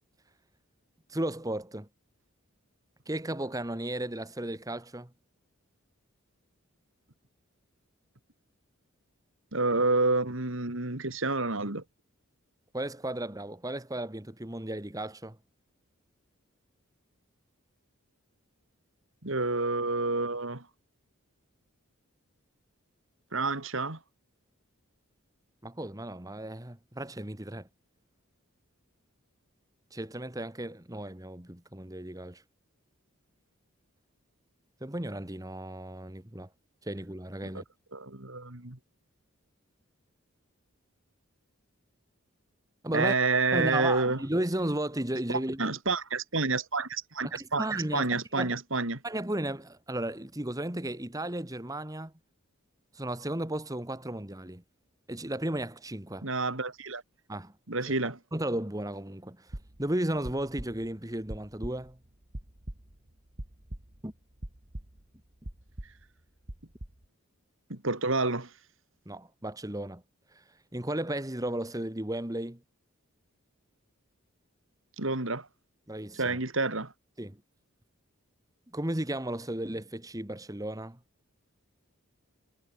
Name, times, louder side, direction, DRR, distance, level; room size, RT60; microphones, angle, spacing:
voice 1, 1.1-1.9 3.0-5.1 12.7-15.4 25.6-27.7 29.9-32.4 34.8-36.5 36.8-37.6 42.8-43.1 43.5-45.8 47.2-48.5 49.0-52.1 52.9-54.6 55.1-56.3 57.3-57.5 58.3-62.0 64.0-64.1 69.0-70.0 70.3-70.4 70.7-72.6 75.9-76.4 77.2-77.4 78.7-81.0, right 1 dB, 15° right, 1.6 m, -34 dB
voice 2, 9.5-11.8 19.2-20.6 23.3-24.0 37.9-38.8 42.9-44.2 45.6-49.0 56.2-57.0 57.7-58.2 67.7-68.5 75.0-75.5 76.2-76.9, right 3 dB, 65° right, 2.8 m, -29 dB
sound 1, 59.5-64.1 64.4-65.2 65.4-66.0 66.5-67.0, right 1 dB, 40° right, 2.3 m, -42 dB
head